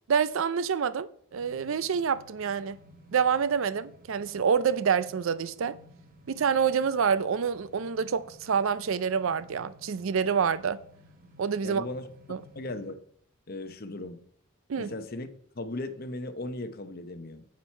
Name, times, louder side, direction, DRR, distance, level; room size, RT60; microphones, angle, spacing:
voice 1, 0.1-2.8 3.1-5.8 6.3-10.8 11.4-11.8 12.3-12.4 14.7-14.9, right 6 dB, 70° right, 0.4 m, -27 dB
sound 1, 1.3-12.9, left 1 dB, 40° right, 1.0 m, -56 dB
voice 2, 11.6-12.1 12.5-13.0 13.5-14.2 14.8-17.4, left 2 dB, 45° left, 0.8 m, -37 dB
8.9 x 7.3 x 4.4 m
head